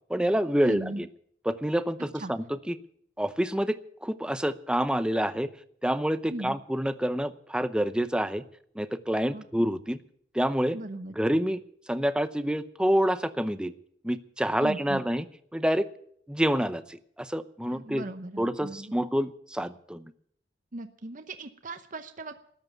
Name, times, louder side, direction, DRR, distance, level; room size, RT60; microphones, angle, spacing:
voice 1, 0.1-1.1 1.5-2.8 3.2-5.5 5.8-8.4 8.8-10.0 10.3-10.8 11.2-11.6 11.9-13.7 14.0-15.2 15.5-15.8 16.3-18.0 18.4-20.1, equal, 5° right, 12 dB, 0.7 m, -27 dB
voice 2, 0.7-1.0 2.1-2.3 6.3-6.6 9.3-9.5 10.7-11.1 14.6-15.0 17.6-18.9 20.7-22.5, right 2 dB, 45° right, 8 dB, 0.9 m, -38 dB
13.5 x 9.5 x 9.3 m, 0.64 s
head